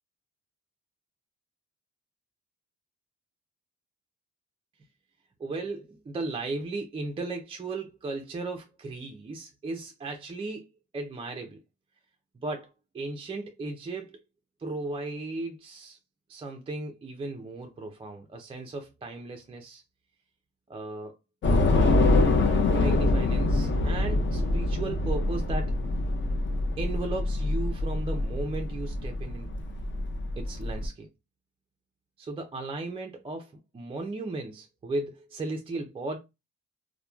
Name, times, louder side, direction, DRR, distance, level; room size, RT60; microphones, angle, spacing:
voice 1, 5.4-10.7 10.9-11.6 12.4-14.2 14.6-16.0 16.3-19.8 20.7-21.1 22.7-25.8 26.8-29.5 30.4-31.1 32.2-36.2, right 2 dB, 20° right, 0.4 m, -36 dB
Train / Subway metro underground, 21.4-30.9, left 2 dB, 40° left, 0.6 m, -25 dB
2.9 x 2.1 x 2.2 m
cardioid pair, 90°, 30 cm